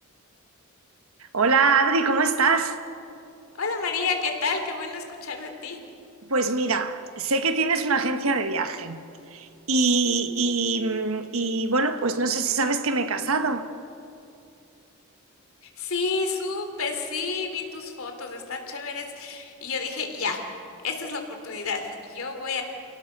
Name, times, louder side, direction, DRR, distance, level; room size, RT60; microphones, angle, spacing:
voice 1, 1.3-2.8 6.3-9.0 9.3-13.7, right 4 dB, 75° right, 1.4 m, -23 dB
voice 2, 3.6-5.8 15.6-20.4 20.8-22.6, left 4 dB, 70° left, 3.2 m, -30 dB
30.0 x 17.5 x 6.8 m
head